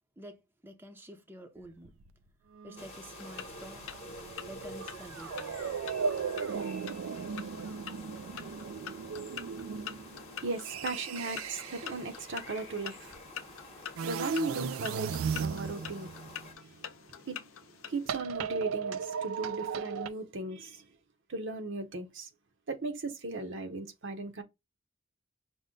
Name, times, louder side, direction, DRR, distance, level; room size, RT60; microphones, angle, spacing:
voice 1, 0.2-2.0 2.6-3.9 4.5-5.8 10.9-11.0, equal, 10° right, 0.6 m, -49 dB
sound 1, 1.8-2.1 2.5-12.1 14.0-16.7 18.1-20.1, right 6 dB, 80° right, 0.4 m, -37 dB
sound 2, 2.8-16.5, left 2 dB, 30° left, 1.0 m, -49 dB
sound 3, 3.1-18.2, left 9 dB, 80° left, 0.6 m, -47 dB
voice 2, 9.7-13.2 13.5-17.5 17.9-20.8 21.3-22.3 22.7-24.4, right 3 dB, 65° right, 0.8 m, -38 dB
5.3 x 2.1 x 3.7 m
head